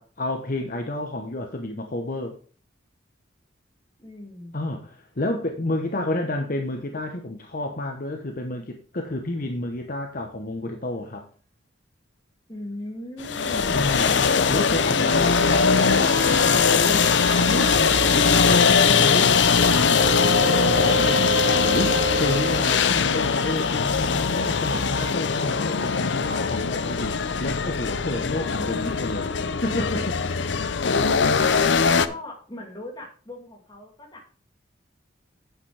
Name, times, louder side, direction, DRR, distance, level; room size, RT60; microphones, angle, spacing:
voice 1, 0.0-2.3 4.5-11.3 13.7-30.4, left 1 dB, 45° left, 4 dB, 1.0 m, -30 dB
voice 2, 4.0-4.7 12.5-13.8 30.8-34.4, left 1 dB, 20° left, 1 dB, 2.4 m, -39 dB
sound 1, 13.2-32.1, left 5 dB, 65° left, 0.6 m, -21 dB
sound 2, 15.0-19.1 19.6-22.6, right 2 dB, 60° right, 1.4 m, -30 dB
9.1 x 7.9 x 3.3 m, 0.42 s
head